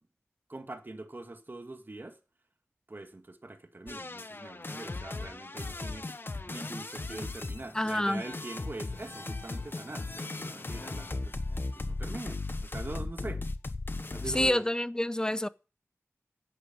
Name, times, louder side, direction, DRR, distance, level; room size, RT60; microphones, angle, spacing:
voice 1, 0.5-2.2 2.9-6.1 6.5-11.3 11.9-13.4 14.1-14.6, right 2 dB, 40° right, 2.1 m, -43 dB
sound 1, 3.9-14.5, left 2 dB, 45° left, 1.1 m, -37 dB
voice 2, 7.7-8.2 14.3-15.5, left 1 dB, 15° left, 0.7 m, -28 dB
11.5 x 8.6 x 9.4 m
wide cardioid pair, 65°, 5 cm